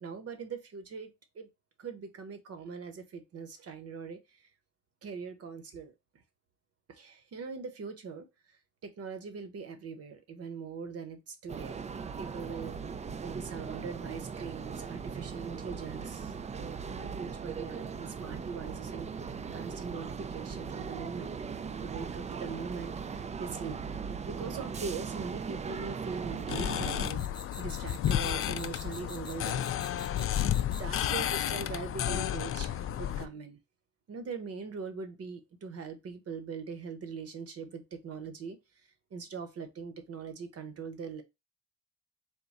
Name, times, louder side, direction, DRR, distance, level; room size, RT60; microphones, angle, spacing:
voice 1, 0.0-1.5 1.8-4.5 5.0-5.9 6.9-8.3 8.8-11.8 12.2-12.8 13.2-19.1 19.5-21.3 21.7-23.8 24.3-27.2 27.6-29.6 30.7-33.6 34.1-38.6 39.1-41.2, right 5 dB, 55° right, 0.9 m, -41 dB
sound 1, 11.5-27.1, right 6 dB, 25° right, 0.3 m, -39 dB
sound 2, 26.4-31.0, left 2 dB, 15° left, 1.0 m, -48 dB
sound 3, 26.5-33.3, left 11 dB, 45° left, 0.4 m, -32 dB
3.6 x 2.2 x 4.0 m
cardioid pair, 90°, 30 cm